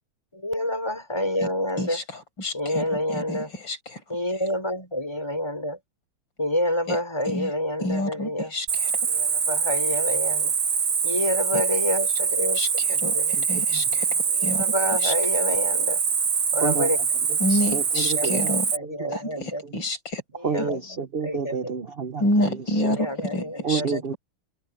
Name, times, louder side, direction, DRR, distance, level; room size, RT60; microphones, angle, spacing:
voice 1, 0.3-2.0 2.5-3.5 4.1-5.8 6.4-8.5 9.0-10.5 11.0-12.6 12.9-13.3 14.3-16.0 16.5-17.0 18.2-19.6 20.4-21.6 22.9-24.0, left 1 dB, 10° left, 5.6 m, -28 dB
voice 2, 1.8-4.0 6.9-7.0 7.3-7.5 7.8-8.9 11.5-11.6 12.5-14.7 15.0-15.1 17.4-18.7 19.1-20.2 20.6-20.7 22.2-23.8, left 1 dB, 65° left, 6.4 m, -29 dB
Cricket, 8.7-18.8, right 6 dB, 90° right, 3.0 m, -24 dB
voice 3, 17.5-18.5 18.8-19.5 20.4-22.2 22.8-23.0 23.6-24.1, right 6 dB, 70° right, 0.5 m, -29 dB
open air
omnidirectional pair, 2.2 m